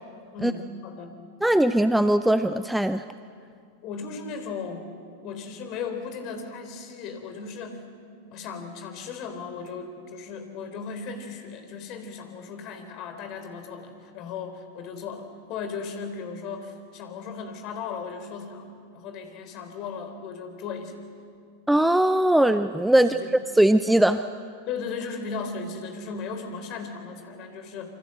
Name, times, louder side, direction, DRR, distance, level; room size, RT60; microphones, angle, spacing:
voice 1, 0.3-1.1 3.8-4.9 5.2-7.8 8.3-21.0 23.0-23.3 24.7-27.9, left 5 dB, 40° left, 7 dB, 3.9 m, -36 dB
voice 2, 1.4-3.0 21.7-23.2 23.6-24.2, right 1 dB, 5° right, 11 dB, 0.6 m, -20 dB
28.0 x 25.0 x 7.9 m, 2.3 s
figure-of-eight pair, 90°, 0 cm